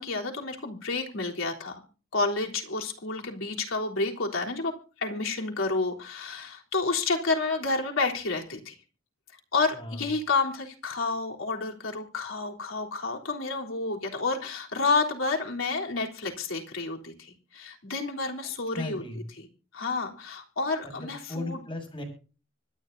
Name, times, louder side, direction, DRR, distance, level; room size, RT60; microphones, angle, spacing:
voice 1, 0.0-1.8 2.1-8.7 9.5-19.0 19.4-19.5 19.7-21.6, left 3 dB, 85° left, 0 dB, 3.5 m, -30 dB
voice 2, 9.7-10.0 18.8-19.3 20.8-22.0, left 2 dB, 25° left, 4 dB, 7.1 m, -36 dB
25.0 x 10.5 x 2.7 m, 0.35 s
head